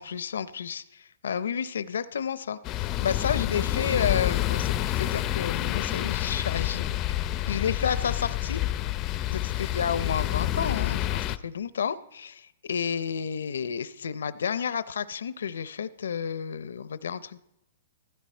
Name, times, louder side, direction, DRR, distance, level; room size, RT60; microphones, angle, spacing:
voice 1, 0.0-6.8 7.5-8.6 9.3-17.4, left 7 dB, 85° left, 16 dB, 0.5 m, -31 dB
sound 1, 2.6-11.4, left 14 dB, 30° left, 0.5 m, -28 dB
15.0 x 13.0 x 4.3 m, 0.83 s
hypercardioid pair, 145°, 0 cm